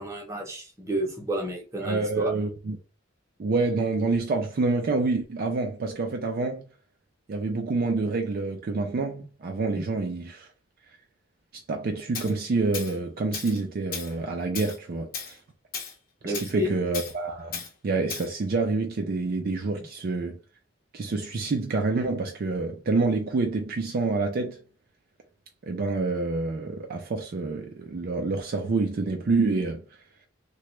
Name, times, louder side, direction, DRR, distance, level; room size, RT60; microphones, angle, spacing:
voice 1, 0.0-2.3 16.2-16.8, equal, 15° right, 0.9 m, -31 dB
voice 2, 1.8-2.8 3.4-6.6 7.3-10.5 11.7-15.4 16.2-20.4 20.9-24.6 25.6-29.8, right 3 dB, 45° right, 0.4 m, -27 dB
Tools, 12.1-12.3 12.7-13.0 13.3-13.6 13.9-14.1 14.6-14.8 15.1-15.3 15.7-15.9 16.3-16.5 16.9-17.1 17.5-17.7 18.1-18.3, left 6 dB, 45° left, 0.7 m, -35 dB
2.9 x 2.2 x 3.1 m
head